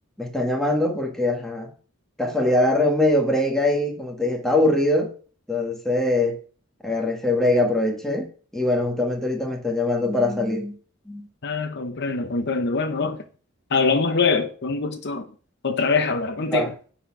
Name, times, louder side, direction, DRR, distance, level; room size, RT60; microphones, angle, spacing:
voice 1, 0.2-1.7 2.2-5.1 5.5-6.4 6.8-10.7 11.1-11.3 16.5-16.7, left 1 dB, ahead, 1.7 m, -22 dB
voice 2, 11.4-13.2 13.7-15.2 15.6-16.7, left 4 dB, 55° left, 0.8 m, -23 dB
10.5 x 4.3 x 6.0 m
head